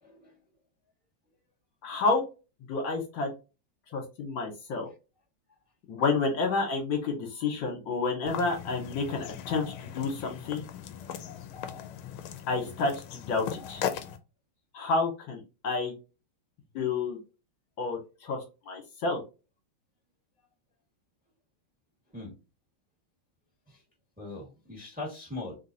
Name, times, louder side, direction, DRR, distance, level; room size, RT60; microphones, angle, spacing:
voice 1, 0.0-0.4 22.1-22.3 23.7-23.8 24.2-25.5, left 2 dB, 5° right, -1 dB, 1.3 m, -40 dB
voice 2, 1.8-2.2 2.7-3.3 3.9-4.9 5.9-10.6 12.5-13.8 14.7-15.9 16.7-17.2 17.8-19.2, left 3 dB, 65° left, 1 dB, 1.9 m, -30 dB
sound 1, 8.3-14.2, left 9 dB, 85° left, 1.5 m, -38 dB
3.9 x 3.7 x 2.6 m, 0.30 s
omnidirectional pair, 2.3 m